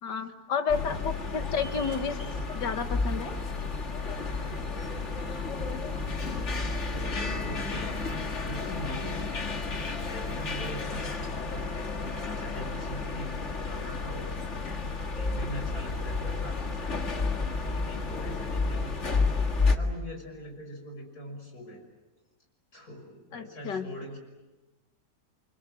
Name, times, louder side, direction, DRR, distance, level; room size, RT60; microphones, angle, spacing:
voice 1, 0.0-2.2 2.5-3.3 23.3-23.9, left 6 dB, 80° left, 8 dB, 2.2 m, -31 dB
sound 1, 0.7-19.8, left 3 dB, 45° left, 2.1 m, -31 dB
voice 2, 5.1-5.7 6.8-8.0 8.4-9.3 9.9-11.6 12.0-14.3 15.1-16.6 17.5-19.1 19.6-21.8 22.7-24.2, left 1 dB, 60° left, 4 dB, 6.5 m, -42 dB
29.5 x 24.5 x 7.6 m, 1.2 s
omnidirectional pair, 1.8 m